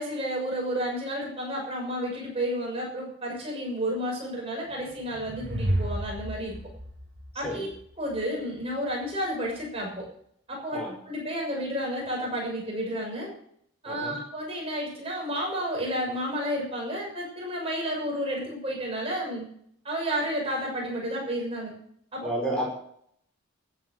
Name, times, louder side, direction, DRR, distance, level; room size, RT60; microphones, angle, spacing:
voice 1, 0.0-6.6 7.3-7.7 8.0-10.0 10.5-10.8 11.0-13.3 13.8-19.4 19.8-21.7 22.1-22.3, equal, 30° right, -2 dB, 6.4 m, -31 dB
sound 1, 4.7-8.2, right 1 dB, 50° right, 5.4 m, -32 dB
voice 2, 22.2-22.7, right 1 dB, 5° left, -1 dB, 5.4 m, -30 dB
14.5 x 9.2 x 6.8 m, 0.66 s
head